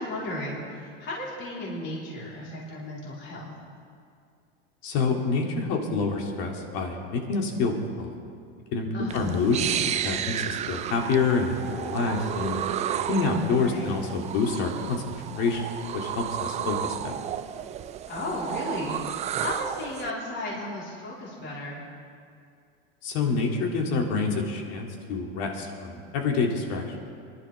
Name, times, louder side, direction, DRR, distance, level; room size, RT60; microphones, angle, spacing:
voice 1, 0.0-3.5 8.9-9.4 13.6-13.9 18.1-21.8, left 1 dB, 40° left, -6 dB, 3.8 m, -35 dB
voice 2, 4.8-8.2 8.7-9.7 10.0-12.6 13.1-15.7 15.9-17.1 23.0-26.8, left 4 dB, 55° left, 1 dB, 2.5 m, -27 dB
sound 1, 9.1-20.1, right 10 dB, 25° right, 0.3 m, -32 dB
24.0 x 11.5 x 3.4 m, 2.3 s
supercardioid pair, 120°, 30 cm